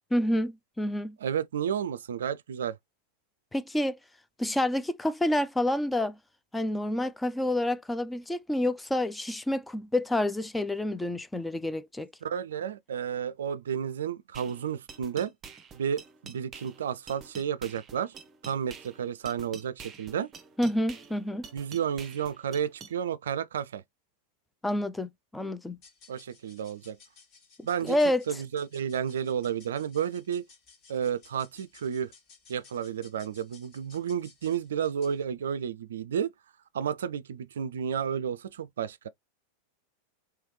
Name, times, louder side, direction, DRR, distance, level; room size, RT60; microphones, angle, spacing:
voice 1, 0.1-1.2 3.5-4.0 4.4-6.2 6.5-12.1 20.6-21.5 24.6-25.8 27.8-28.2, left 1 dB, 5° left, 0.4 m, -28 dB
voice 2, 1.2-2.8 12.2-15.3 15.7-18.2 18.4-20.3 21.5-23.8 26.1-27.0 27.6-28.0 28.3-30.5 30.9-32.1 32.5-36.3 36.7-39.1, right 8 dB, 65° right, 0.4 m, -32 dB
sound 1, 14.3-22.9, right 5 dB, 25° right, 0.7 m, -48 dB
sound 2, 25.7-35.3, left 5 dB, 40° left, 1.8 m, -58 dB
3.3 x 3.1 x 3.2 m
figure-of-eight pair, 90°, 0 cm